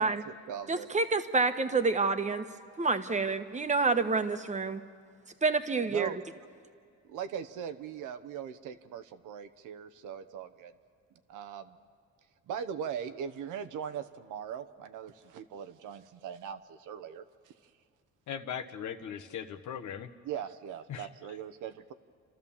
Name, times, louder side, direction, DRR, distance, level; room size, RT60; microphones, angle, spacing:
voice 1, 0.0-0.9 5.9-6.2 7.1-10.7 11.3-11.8 12.5-17.5 20.2-21.9, right 8 dB, 85° right, 10 dB, 1.0 m, -40 dB
voice 2, 0.7-2.4 2.8-4.8 5.4-6.2, right 4 dB, 25° right, 8 dB, 1.2 m, -28 dB
voice 3, 18.3-20.1 20.9-21.1, left 8 dB, 75° left, 7 dB, 1.2 m, -39 dB
30.0 x 13.0 x 7.2 m, 2.2 s
cardioid pair, 90°, 30 cm